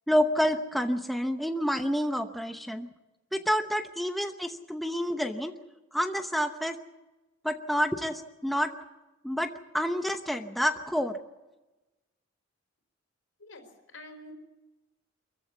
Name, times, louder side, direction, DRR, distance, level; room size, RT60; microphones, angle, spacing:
voice 1, 0.1-2.9 3.3-5.5 5.9-6.8 7.4-8.7 9.2-11.2, equal, ahead, 6 dB, 0.9 m, -28 dB
voice 2, 13.4-14.3, left 1 dB, 80° left, 6 dB, 4.5 m, -47 dB
25.0 x 15.0 x 8.2 m, 1.1 s
head